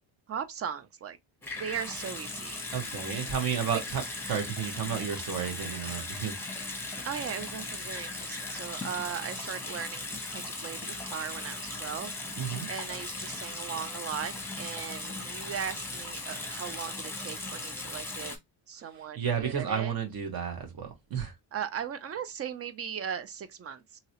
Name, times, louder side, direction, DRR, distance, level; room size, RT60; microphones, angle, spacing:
voice 1, 0.3-1.2 1.5-2.6 7.0-12.1 12.7-18.3 18.7-19.9 21.5-24.0, right 8 dB, 35° right, 0.4 m, -38 dB
Water tap faucet / Sink (filling or washing) / Bathtub (filling or washing), 1.4-18.4, left 2 dB, 5° left, 0.9 m, -38 dB
voice 2, 2.7-4.0 4.3-6.4 12.4-12.7 19.2-21.3, right 7 dB, 50° right, 1.3 m, -32 dB
2.9 x 2.8 x 2.9 m
cardioid pair, 115°, 47 cm